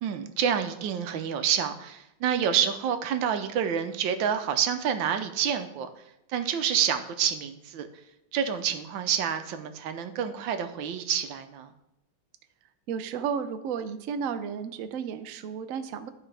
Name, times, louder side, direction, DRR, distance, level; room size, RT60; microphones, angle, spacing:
voice 1, 0.0-5.9 6.3-7.9 8.3-11.7, right 8 dB, 90° right, 8 dB, 1.4 m, -28 dB
voice 2, 12.9-16.1, right 7 dB, 70° right, 9 dB, 0.8 m, -33 dB
12.0 x 4.6 x 3.3 m, 0.86 s
omnidirectional pair, 2.0 m